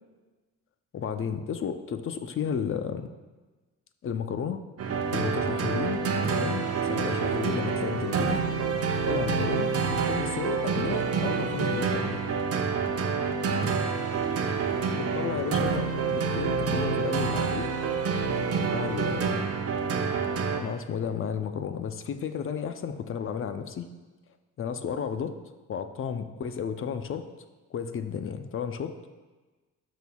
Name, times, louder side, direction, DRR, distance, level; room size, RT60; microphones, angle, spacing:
voice 1, 0.9-3.1 4.0-4.6 5.1-6.0 6.3-8.4 9.0-12.2 15.0-17.7 18.7-19.5 20.6-23.9 24.6-25.3 25.7-27.3 27.7-28.9, left 7 dB, 45° left, 9 dB, 0.6 m, -33 dB
sound 1, 4.8-20.6, right 5 dB, 50° right, 0.8 m, -27 dB
12.5 x 6.3 x 2.3 m, 1.3 s
cardioid pair, 90°, 30 cm